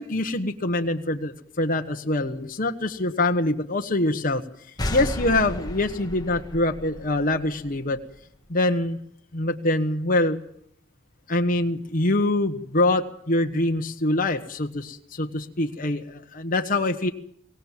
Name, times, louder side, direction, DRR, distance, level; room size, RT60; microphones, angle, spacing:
voice 1, 0.0-4.4 4.9-8.0 8.5-9.0 9.3-10.4 11.3-17.1, left 2 dB, 45° left, 4 dB, 1.4 m, -24 dB
sound 1, 4.8-8.3, left 1 dB, 20° left, 1.6 m, -33 dB
24.0 x 18.0 x 7.5 m, 0.68 s
head